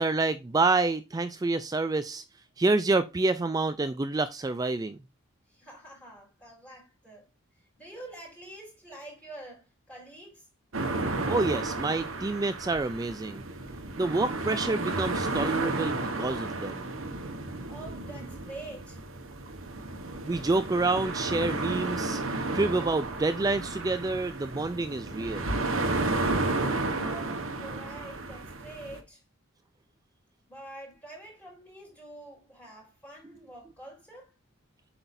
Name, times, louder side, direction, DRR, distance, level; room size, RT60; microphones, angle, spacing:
voice 1, 0.0-2.2 2.6-5.0 11.3-13.4 14.0-16.9 20.2-22.2 22.5-25.5, right 3 dB, 15° right, 0.3 m, -28 dB
voice 2, 5.5-7.2 7.8-10.5 17.7-19.0 27.0-29.2 30.5-34.3, right 2 dB, 5° left, 3.8 m, -46 dB
sound 1, 10.7-29.0, right 2 dB, 65° right, 1.2 m, -32 dB
8.1 x 5.9 x 2.6 m
head